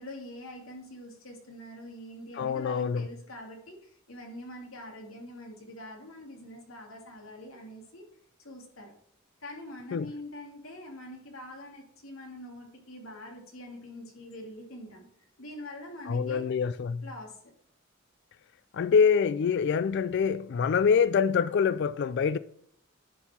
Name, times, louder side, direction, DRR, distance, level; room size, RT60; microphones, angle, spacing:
voice 1, 0.0-8.0 8.4-8.9 9.4-15.1 15.4-16.5 17.0-17.4, left 1 dB, 85° left, 2.5 m, -44 dB
voice 2, 2.4-3.1 9.9-10.1 16.1-17.0 18.7-22.4, left 6 dB, 55° left, 0.3 m, -25 dB
10.5 x 4.6 x 4.2 m
head